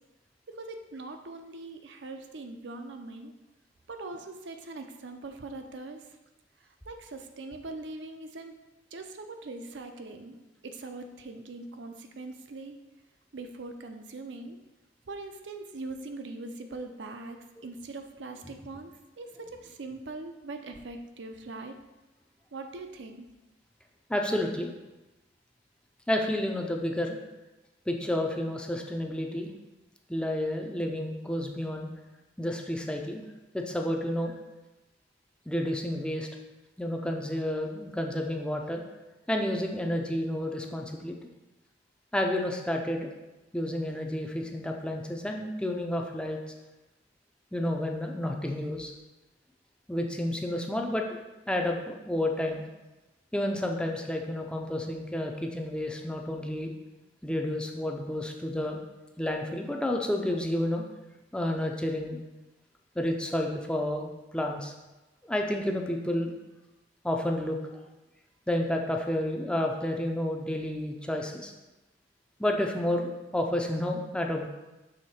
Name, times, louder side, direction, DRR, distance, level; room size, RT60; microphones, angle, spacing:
voice 1, 0.5-3.3 3.9-6.0 6.9-8.6 8.9-10.4 10.6-12.8 13.3-14.6 15.1-18.9 19.2-21.8 22.5-23.3, right 2 dB, 65° right, 6 dB, 0.6 m, -41 dB
voice 2, 24.1-24.7 26.1-27.2 27.9-29.5 30.1-31.9 32.4-33.2 33.5-34.3 35.5-36.3 36.8-38.8 39.3-41.2 42.1-43.1 43.5-46.4 47.5-48.9 49.9-51.1 51.5-52.6 53.3-56.7 57.2-58.8 59.2-60.8 61.3-62.2 63.0-64.7 65.3-66.3 67.0-67.6 68.5-71.5 72.4-74.5, left 1 dB, 5° left, 2 dB, 0.5 m, -30 dB
6.5 x 3.5 x 4.3 m, 1.1 s
head